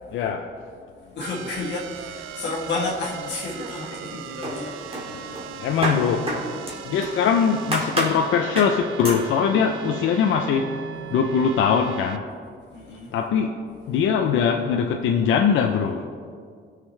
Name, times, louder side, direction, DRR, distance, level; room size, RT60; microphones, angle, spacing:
voice 1, 0.1-0.5 5.1-5.2 5.5-6.3 6.8-10.8 11.1-12.3 13.1-13.6 13.9-16.0, left 6 dB, 80° left, 3 dB, 0.6 m, -22 dB
voice 2, 1.0-4.8 12.7-13.1, left 3 dB, 60° left, -4 dB, 1.8 m, -31 dB
sound 1, 1.2-12.2, right 9 dB, 85° right, 0.5 m, -38 dB
sound 2, 3.3-4.1 4.4-7.2 7.7-8.2 8.6-8.8 9.0-9.3, right 1 dB, 30° right, 2.1 m, -29 dB
17.5 x 6.6 x 3.3 m, 2.1 s
cardioid pair, 90°, 20 cm